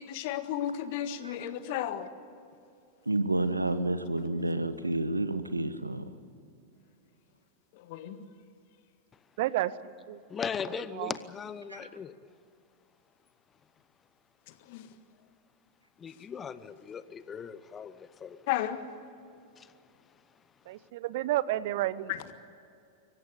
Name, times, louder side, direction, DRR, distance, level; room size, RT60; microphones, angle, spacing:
voice 1, 0.0-2.1 7.9-8.2 14.7-14.8 18.5-18.8, left 11 dB, 50° left, 1.6 m, -33 dB
voice 2, 3.1-6.0 11.7-11.9, right 2 dB, 85° right, 1.1 m, -30 dB
voice 3, 9.4-10.2 10.7-11.1 20.7-22.1, right 15 dB, 50° right, 0.7 m, -31 dB
voice 4, 10.3-12.2 16.0-18.4 19.6-19.7, left 7 dB, 20° left, 1.0 m, -38 dB
25.0 x 15.0 x 9.9 m
figure-of-eight pair, 90°, 0 cm